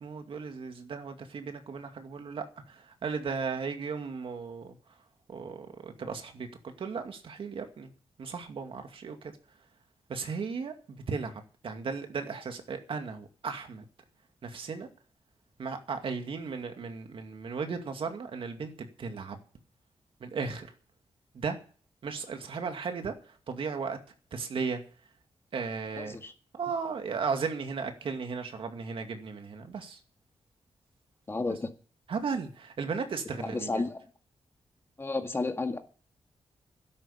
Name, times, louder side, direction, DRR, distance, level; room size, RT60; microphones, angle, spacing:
voice 1, 0.0-4.8 5.3-7.9 8.2-9.2 10.1-13.8 14.4-14.9 15.6-19.4 20.2-20.7 21.3-21.6 22.0-23.2 23.5-24.0 24.3-24.8 25.5-26.2 26.6-30.0 32.1-33.8, right 5 dB, 65° right, 2.3 m, -35 dB
voice 2, 26.0-26.3 31.3-31.7 33.4-34.0 35.0-35.8, left 3 dB, 25° left, 1.8 m, -32 dB
13.0 x 11.0 x 7.0 m
wide cardioid pair, 135°, 10 cm